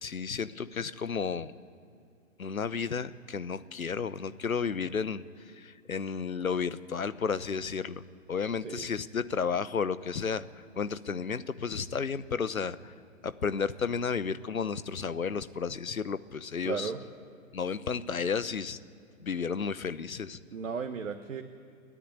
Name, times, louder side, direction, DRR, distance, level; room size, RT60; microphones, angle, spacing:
voice 1, 0.0-1.5 2.4-5.2 5.6-8.0 8.3-10.4 10.8-12.9 13.2-16.9 17.5-18.8 19.2-20.4, left 6 dB, 75° left, 15 dB, 1.0 m, -32 dB
voice 2, 16.6-17.0 20.5-21.4, right 6 dB, 65° right, 5 dB, 1.4 m, -35 dB
29.0 x 10.0 x 9.7 m, 2.4 s
figure-of-eight pair, 120°, 42 cm